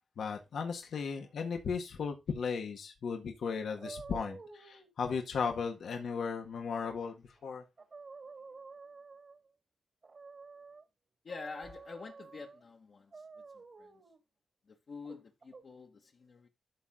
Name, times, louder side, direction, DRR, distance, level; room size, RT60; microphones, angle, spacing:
voice 1, 0.2-7.1 7.4-7.6, left 5 dB, 80° left, 1.6 m, -36 dB
sound 1, 3.8-4.9 7.3-7.4 7.8-9.5 10.0-10.8 11.3-12.6 13.1-14.2 15.0-15.6, right 4 dB, 50° right, 1.8 m, -50 dB
voice 2, 11.3-13.1 13.8-13.9 14.9-16.5, left 4 dB, 60° left, 1.7 m, -46 dB
12.5 x 4.2 x 3.7 m
cardioid pair, 75°, 0 cm